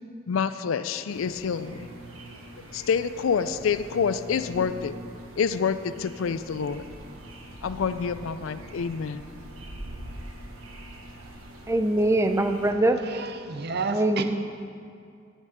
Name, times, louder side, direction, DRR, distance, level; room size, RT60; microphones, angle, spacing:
voice 1, 0.3-1.9 2.7-4.9 5.4-6.8 7.6-9.2, left 6 dB, 70° left, 12 dB, 0.4 m, -27 dB
sound 1, 1.1-12.7, right 1 dB, 85° right, 1.3 m, -43 dB
voice 2, 11.7-13.0 13.9-14.2, right 1 dB, 15° right, 7 dB, 0.5 m, -22 dB
voice 3, 13.1-14.2, right 4 dB, 50° right, 8 dB, 0.7 m, -31 dB
10.0 x 9.9 x 5.1 m, 2.3 s
head